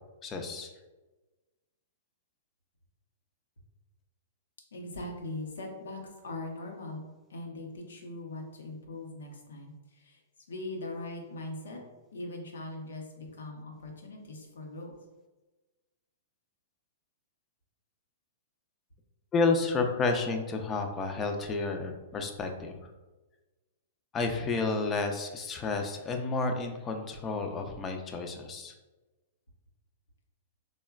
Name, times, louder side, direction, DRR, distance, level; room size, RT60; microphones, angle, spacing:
voice 1, 0.2-0.7 19.3-22.8 24.1-28.7, left 3 dB, 20° left, 4 dB, 0.4 m, -30 dB
voice 2, 4.7-7.0 7.3-10.2 10.5-11.8 12.1-14.9, left 2 dB, 90° left, 1 dB, 0.7 m, -41 dB
3.6 x 2.1 x 2.3 m, 1.2 s
hypercardioid pair, 135°, 0 cm